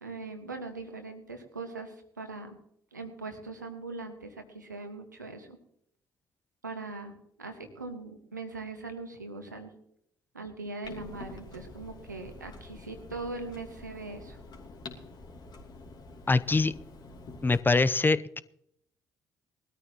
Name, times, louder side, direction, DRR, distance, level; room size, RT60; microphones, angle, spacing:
voice 1, 0.0-2.6 2.9-5.6 6.6-7.1 7.4-9.7 10.3-14.4, right 3 dB, 90° right, 6 dB, 1.6 m, -41 dB
Clock, 10.8-17.6, left 3 dB, 50° left, 2.8 m, -47 dB
voice 2, 16.3-16.7 17.4-18.4, left 3 dB, 20° left, 15 dB, 0.7 m, -24 dB
21.0 x 13.5 x 3.0 m, 0.71 s
figure-of-eight pair, 45°, 9 cm